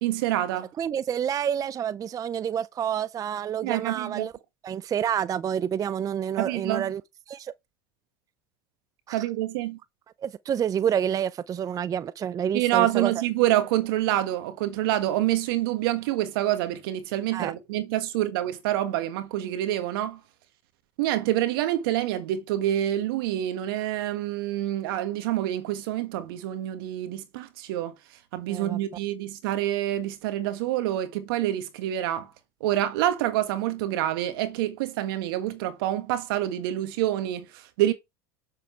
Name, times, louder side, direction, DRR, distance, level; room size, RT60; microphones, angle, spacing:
voice 1, 0.0-0.7 3.6-4.3 6.4-6.9 9.1-9.8 12.5-20.2 21.0-27.9 28.3-32.3 32.6-37.9, right 13 dB, 75° right, 1.6 m, -27 dB
voice 2, 0.8-4.3 4.6-7.0 7.3-7.5 9.1-9.2 10.2-13.1 17.3-17.5 28.5-28.8, right 9 dB, 30° right, 0.4 m, -28 dB
7.3 x 6.9 x 3.3 m
hypercardioid pair, 95°, 12 cm